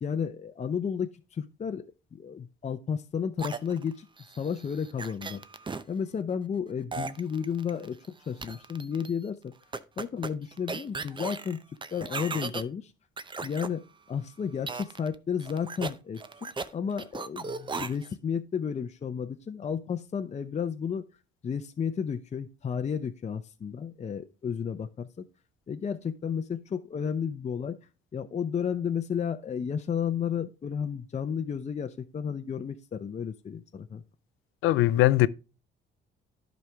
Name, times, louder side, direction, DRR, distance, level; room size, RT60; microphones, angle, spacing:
voice 1, 0.0-1.8 2.1-4.1 4.4-5.4 5.9-9.5 10.0-11.6 11.9-12.9 13.4-21.0 21.4-25.2 25.7-27.8 28.1-34.0, left 7 dB, 35° left, 0.6 m, -32 dB
sound 1, 3.4-5.8 6.9-8.1 8.4-9.1 9.7-12.6 13.2-13.7 14.7-15.1 15.4-16.7 17.0-18.1, right 4 dB, 25° right, 0.6 m, -37 dB
voice 2, 34.6-35.3, left 16 dB, 90° left, 0.4 m, -20 dB
11.0 x 5.2 x 3.4 m
cardioid pair, 90°, 20 cm